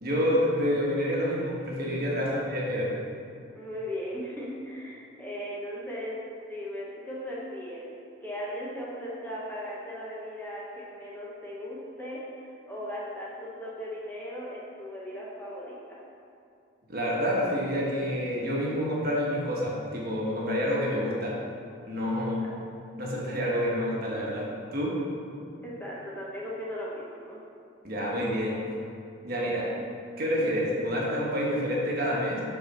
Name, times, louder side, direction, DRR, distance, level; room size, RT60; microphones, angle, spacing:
voice 1, 0.0-2.9 16.9-21.3 21.9-22.5 23.0-24.5 24.7-25.0 27.8-28.6 29.2-29.6 30.2-32.4, equal, 50° right, -4 dB, 1.2 m, -28 dB
voice 2, 3.5-6.2 6.5-7.9 8.2-16.0 22.4-22.5 25.6-27.4 29.5-29.6, equal, 10° left, -6 dB, 0.8 m, -38 dB
5.4 x 4.2 x 5.3 m, 2.5 s
head